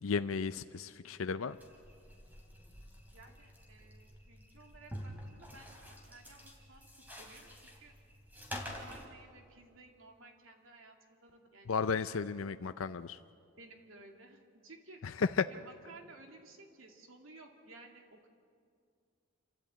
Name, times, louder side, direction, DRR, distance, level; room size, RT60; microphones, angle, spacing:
voice 1, 0.0-1.6 11.7-13.2 15.0-15.5, left 5 dB, 85° left, 11 dB, 0.5 m, -33 dB
sound 1, 1.5-9.0, equal, 10° right, 3.0 m, -48 dB
voice 2, 3.1-6.9 7.2-7.9 8.6-11.9 13.6-15.0 15.5-18.3, right 3 dB, 80° right, 3 dB, 2.5 m, -56 dB
28.0 x 13.0 x 8.8 m, 2.3 s
head